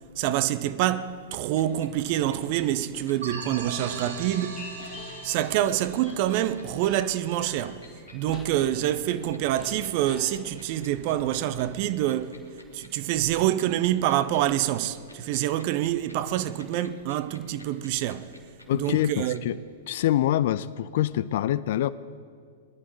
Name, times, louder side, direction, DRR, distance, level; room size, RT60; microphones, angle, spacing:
voice 1, 0.2-4.7 5.2-7.8 8.1-12.4 12.7-18.3 18.7-19.4, right 13 dB, 40° right, 0.6 m, -26 dB
sound 1, 1.1-19.4, left 2 dB, 85° left, 1.9 m, -50 dB
sound 2, 1.7-11.8 12.1-12.3 13.1-13.4 13.7-14.2, left 3 dB, 15° left, 1.7 m, -47 dB
sound 3, 3.2-7.7, right 5 dB, 65° right, 1.8 m, -39 dB
voice 2, 18.7-19.6 19.9-21.9, left 12 dB, 50° left, 0.3 m, -25 dB
20.5 x 11.5 x 4.7 m
figure-of-eight pair, 100°, 0 cm